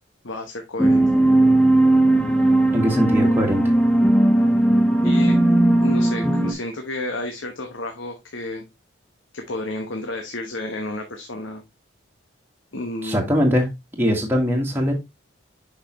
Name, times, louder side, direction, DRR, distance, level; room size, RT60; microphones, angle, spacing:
voice 1, 0.2-1.0 5.0-5.4 5.8-8.6 9.3-11.6 12.7-13.2, left 1 dB, 75° left, 1.1 m, -31 dB
sound 1, 0.8-6.5, right 1 dB, 5° left, 0.8 m, -17 dB
voice 2, 2.7-3.7 13.0-13.7 14.0-14.9, equal, 10° right, 1.6 m, -21 dB
6.5 x 5.7 x 3.0 m
head